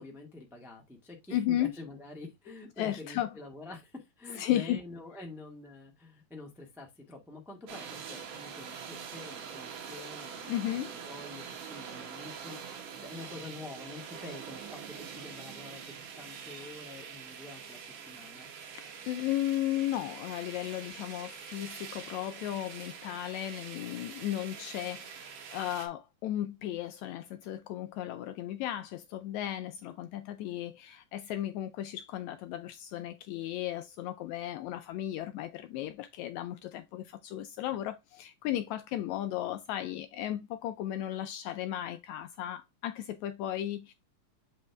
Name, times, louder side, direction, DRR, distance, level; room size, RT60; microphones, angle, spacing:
voice 1, 0.0-17.8 18.0-18.5, left 2 dB, 5° right, 0.4 m, -47 dB
voice 2, 1.3-1.7 2.8-3.3 4.4-4.8 10.5-10.9 18.7-43.9, left 12 dB, 80° left, 1.7 m, -35 dB
sound 1, 7.7-25.9, right 7 dB, 80° right, 3.0 m, -44 dB
7.5 x 4.3 x 3.4 m
omnidirectional pair, 3.7 m